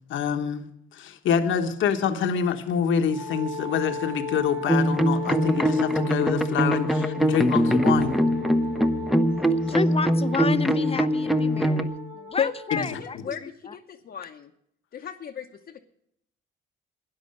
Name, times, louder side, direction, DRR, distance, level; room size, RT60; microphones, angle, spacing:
voice 1, 0.1-0.7 0.9-8.2 12.7-12.9, left 7 dB, 75° left, 6 dB, 1.2 m, -26 dB
Wind instrument woodwind instrument, 3.1-13.1, left 4 dB, 50° right, 4.3 m, -36 dB
sound 1, 4.7-11.8, equal, ahead, 0.8 m, -23 dB
voice 2, 9.7-13.8, left 5 dB, 30° left, 13 dB, 0.7 m, -31 dB
voice 3, 12.8-14.5 14.9-15.8, left 8 dB, 55° left, 0 dB, 0.9 m, -33 dB
12.5 x 9.9 x 6.5 m, 0.74 s
cardioid pair, 90°, 20 cm